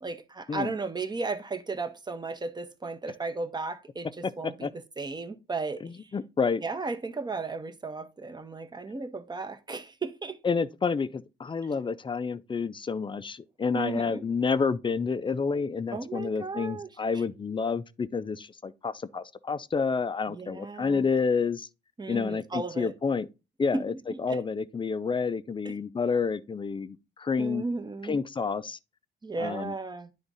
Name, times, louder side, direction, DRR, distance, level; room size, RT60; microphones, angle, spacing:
voice 1, 0.0-6.1 6.6-10.4 13.7-14.2 15.9-16.9 17.1-17.2 20.3-21.0 22.0-22.9 23.7-23.8 24.1-24.4 25.6-25.7 27.4-28.2 29.2-30.1, right 3 dB, 20° right, 0.9 m, -35 dB
voice 2, 4.2-4.7 5.8-6.6 10.4-21.7 22.1-23.3 23.6-23.9 24.2-27.6 28.1-28.8 29.4-29.7, left 5 dB, 25° left, 0.5 m, -29 dB
9.6 x 3.6 x 4.0 m
cardioid pair, 90°, 20 cm